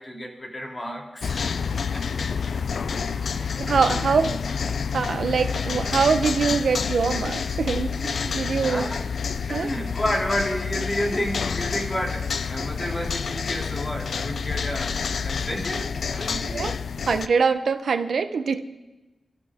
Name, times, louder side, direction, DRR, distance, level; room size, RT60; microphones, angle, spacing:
voice 1, 0.0-1.6 1.9-2.6 2.9-3.2 3.9-4.2 8.5-9.0 9.5-16.7, equal, 25° left, 0 dB, 3.0 m, -31 dB
sound 1, 1.2-17.3, left 6 dB, 80° left, 0.5 m, -28 dB
voice 2, 3.6-4.4 4.9-8.9 9.5-9.7 16.5-16.7 17.1-18.6, right 5 dB, 85° right, 9 dB, 0.9 m, -23 dB
28.0 x 13.5 x 3.7 m, 1.1 s
wide cardioid pair, 135°, 0 cm